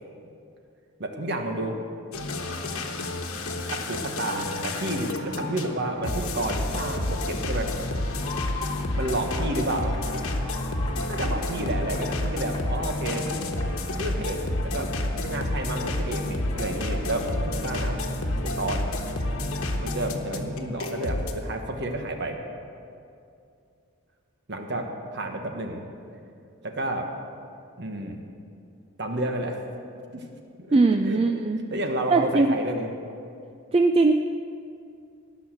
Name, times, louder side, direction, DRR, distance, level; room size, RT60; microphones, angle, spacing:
voice 1, 1.0-1.7 3.7-7.7 8.5-8.6 9.0-9.9 11.1-13.3 14.0-14.9 15.2-18.0 18.4-18.9 19.8-22.4 24.5-25.8 26.6-27.1 27.8-28.2 29.0-29.6 30.1-30.2 30.7-30.8 31.1-31.3 31.7-32.9, right 1 dB, 50° right, 4 dB, 1.3 m, -30 dB
sound 1, 2.1-21.3, left 1 dB, 70° left, 1.2 m, -29 dB
sound 2, 2.5-18.5, left 3 dB, 20° left, 1.2 m, -44 dB
voice 2, 30.7-31.6 32.1-32.5 33.7-34.1, right 3 dB, 25° right, 6 dB, 0.3 m, -20 dB
18.0 x 6.3 x 7.9 m, 2.5 s
head